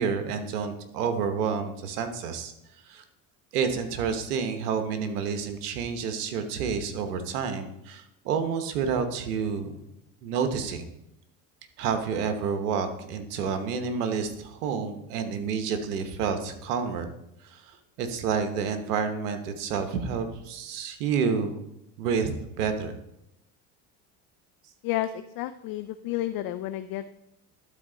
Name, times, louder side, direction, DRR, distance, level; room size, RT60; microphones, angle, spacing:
voice 1, 0.0-2.5 2.9-3.0 3.5-9.7 10.2-10.8 11.8-17.1 17.5-21.6 22.0-22.9, right 6 dB, 85° right, 8 dB, 1.1 m, -29 dB
voice 2, 24.8-27.1, left 13 dB, 50° left, 11 dB, 0.5 m, -31 dB
12.0 x 4.2 x 3.8 m, 0.82 s
supercardioid pair, 90°, 45 cm